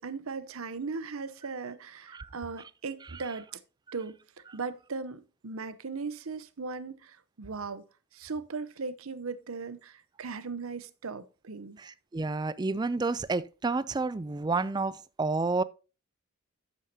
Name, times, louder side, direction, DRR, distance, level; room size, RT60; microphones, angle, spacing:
voice 1, 0.0-3.5 3.9-4.2 4.5-7.8 8.1-11.8, right 4 dB, 80° right, 0.8 m, -38 dB
voice 2, 11.8-15.6, right 3 dB, 20° right, 0.3 m, -30 dB
11.5 x 8.2 x 2.8 m
head